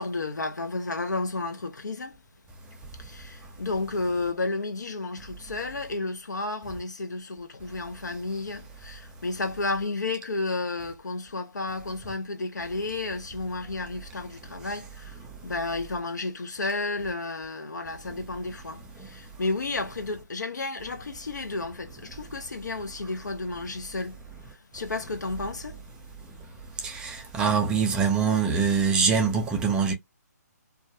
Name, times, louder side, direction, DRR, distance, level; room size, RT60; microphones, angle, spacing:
voice 1, 0.0-2.1 3.0-24.2 24.5-25.8, left 3 dB, 80° left, 0.7 m, -32 dB
voice 2, 26.8-29.9, right 6 dB, 10° right, 0.3 m, -24 dB
2.3 x 2.1 x 2.6 m
figure-of-eight pair, 145°, 9 cm